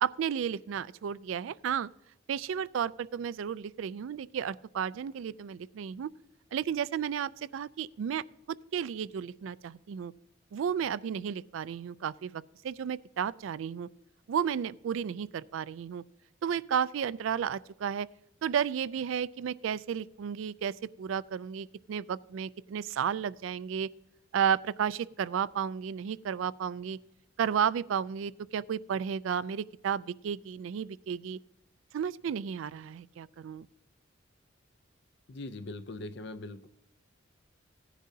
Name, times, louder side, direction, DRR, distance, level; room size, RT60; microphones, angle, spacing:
voice 1, 0.0-1.9 2.3-6.1 6.5-10.1 10.5-13.9 14.3-16.0 16.4-18.1 18.4-23.9 24.3-27.0 27.4-31.4 31.9-33.7, right 8 dB, 75° right, 19 dB, 0.3 m, -33 dB
voice 2, 35.3-36.7, left 2 dB, 55° left, 14 dB, 0.5 m, -41 dB
16.5 x 10.0 x 2.7 m, 0.83 s
head